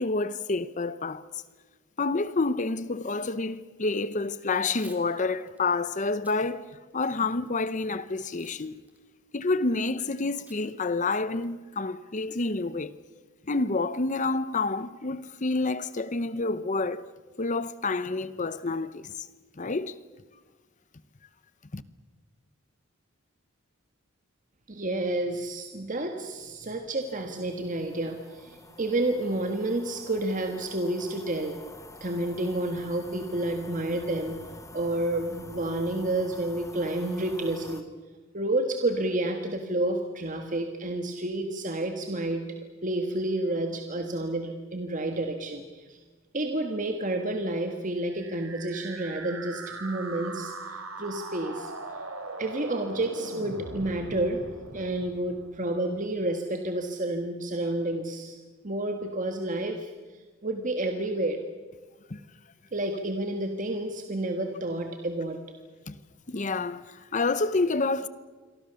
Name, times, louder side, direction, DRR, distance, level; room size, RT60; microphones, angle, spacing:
voice 1, 0.0-1.4 2.0-8.8 9.3-13.0 13.5-17.1 17.4-19.1 19.6-19.9 21.7-21.8 62.1-62.2 65.9-66.0 66.3-68.1, left 3 dB, 40° left, 0.8 m, -28 dB
Packing tape duct tape / Tearing, 4.6-5.0 5.5-5.6 6.1-6.4 6.9-7.5 8.2-8.6 8.9-9.0 10.5-10.6 11.0-11.1 11.4-11.7, right 2 dB, 10° right, 3.1 m, -53 dB
voice 2, 24.7-31.6 32.0-34.4 34.7-37.9 38.3-42.5 42.8-46.0 46.3-51.7 52.4-54.5 54.7-58.4 58.6-59.9 60.4-61.4 62.7-65.4, right 1 dB, 40° right, 1.7 m, -30 dB
sound 1, 27.1-37.8, left 2 dB, 15° left, 1.6 m, -48 dB
sound 2, 48.1-56.0, right 3 dB, 85° right, 4.2 m, -40 dB
28.0 x 23.5 x 7.0 m
head